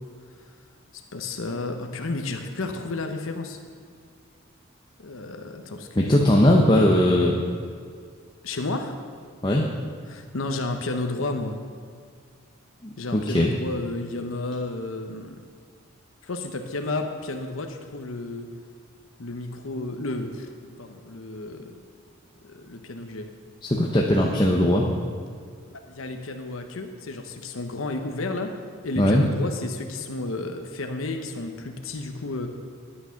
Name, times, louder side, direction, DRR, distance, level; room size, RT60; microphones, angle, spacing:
voice 1, 0.9-3.6 5.0-6.3 8.4-9.0 10.0-11.6 13.0-15.3 16.2-18.5 19.2-21.7 22.4-23.3 25.7-28.5 28.8-32.5, left 2 dB, 75° left, 5 dB, 0.9 m, -32 dB
voice 2, 6.0-7.4 9.4-9.6 12.8-13.5 23.6-24.9 29.0-29.2, left 1 dB, 20° left, -1 dB, 0.8 m, -19 dB
11.5 x 8.7 x 5.8 m, 2.1 s
head